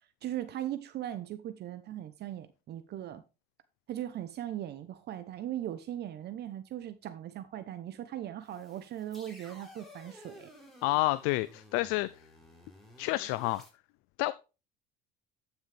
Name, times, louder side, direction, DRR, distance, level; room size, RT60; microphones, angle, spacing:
voice 1, 0.2-3.2 3.9-10.5, right 12 dB, 50° right, 0.9 m, -39 dB
sound 1, 8.4-13.7, left 1 dB, ahead, 3.9 m, -54 dB
voice 2, 10.8-12.1 13.0-13.6 14.2-14.3, left 19 dB, 80° left, 0.5 m, -29 dB
12.5 x 6.3 x 3.4 m
supercardioid pair, 105°, 21 cm